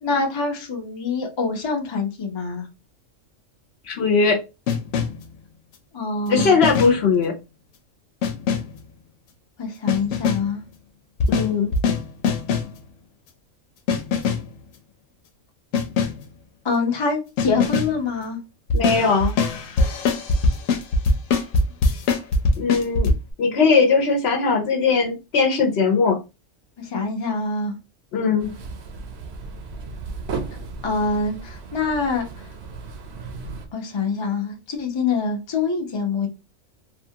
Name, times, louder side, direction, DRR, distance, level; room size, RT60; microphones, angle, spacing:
voice 1, 0.0-2.7 5.9-6.6 9.6-10.6 16.6-18.4 26.8-27.8 30.8-32.5 33.7-36.3, left 4 dB, 35° left, 0.5 m, -25 dB
voice 2, 3.9-4.4 6.3-7.3 11.3-11.7 18.7-19.3 22.6-26.2 28.1-28.5, left 5 dB, 60° left, 0.8 m, -19 dB
sound 1, 4.7-5.3 6.4-7.1 8.2-8.8 9.9-10.6 11.2-12.8 13.9-14.6 15.7-16.3 17.4-18.0 18.7-23.1, left 4 dB, 85° left, 1.0 m, -22 dB
sound 2, 28.4-33.7, right 4 dB, 60° right, 0.8 m, -35 dB
2.8 x 2.3 x 2.7 m
omnidirectional pair, 1.3 m